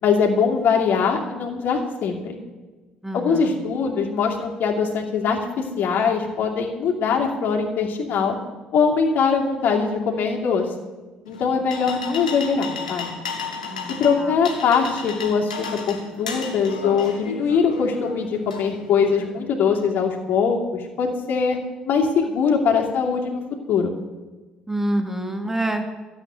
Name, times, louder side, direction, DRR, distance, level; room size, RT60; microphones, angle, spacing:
voice 1, 0.0-2.4 3.1-8.4 8.7-10.7 11.3-13.1 14.0-21.6 21.9-23.4 23.7-23.9, left 6 dB, 60° left, 1 dB, 2.6 m, -22 dB
voice 2, 3.0-3.5 13.7-14.3 24.7-25.9, right 1 dB, 10° right, 5 dB, 2.4 m, -27 dB
sound 1, 11.3-19.2, left 5 dB, 90° left, 1.4 m, -34 dB
13.0 x 8.0 x 9.3 m, 1.2 s
hypercardioid pair, 50°, 4 cm